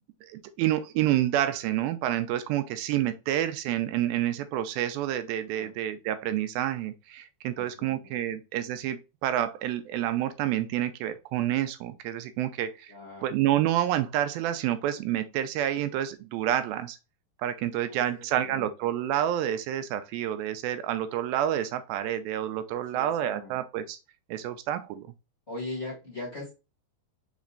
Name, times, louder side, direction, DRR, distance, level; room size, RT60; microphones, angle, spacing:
voice 1, 0.3-12.9 13.2-17.0 17.4-24.0 24.3-25.1, right 12 dB, 80° right, 2.3 m, -28 dB
voice 2, 7.6-7.9 8.2-8.4 12.9-13.3 17.9-18.7 22.7-23.6 25.5-26.5, left 2 dB, 45° left, 0.8 m, -40 dB
5.2 x 4.1 x 2.4 m
omnidirectional pair, 4.4 m